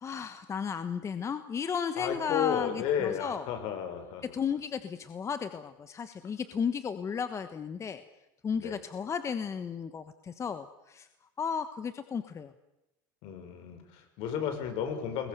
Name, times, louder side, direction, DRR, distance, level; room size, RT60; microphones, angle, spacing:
voice 1, 0.0-3.4 4.3-8.0 8.4-11.1 11.4-12.5, left 6 dB, 30° left, 10 dB, 1.4 m, -34 dB
voice 2, 2.0-4.2 8.6-8.8 13.2-15.3, left 8 dB, 65° left, 7 dB, 6.1 m, -33 dB
28.0 x 22.0 x 7.0 m, 0.94 s
supercardioid pair, 110°, 11 cm